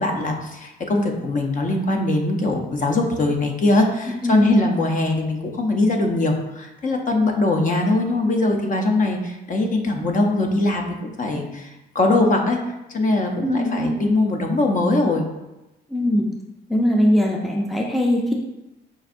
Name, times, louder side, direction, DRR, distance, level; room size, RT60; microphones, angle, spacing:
voice 1, 0.0-12.6 12.9-15.2, left 2 dB, 40° left, 2 dB, 0.7 m, -21 dB
voice 2, 4.2-4.6 13.4-14.0 15.9-16.3 16.7-18.3, equal, ahead, 0 dB, 0.5 m, -20 dB
5.4 x 2.6 x 2.5 m, 0.98 s
cardioid pair, 90°, 20 cm